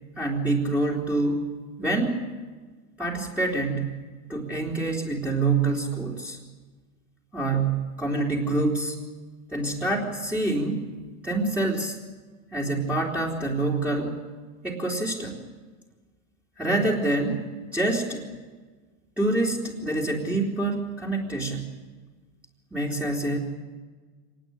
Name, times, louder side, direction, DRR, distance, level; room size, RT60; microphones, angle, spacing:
voice 1, 0.2-1.5 1.8-2.2 3.0-3.9 4.3-6.4 7.3-9.0 9.5-10.9 11.2-12.0 12.5-14.2 14.6-15.4 16.6-18.2 19.2-21.7 22.7-23.4, right 2 dB, 5° right, -4 dB, 3.4 m, -26 dB
26.0 x 19.0 x 9.0 m, 1.4 s
hypercardioid pair, 120°, 45 cm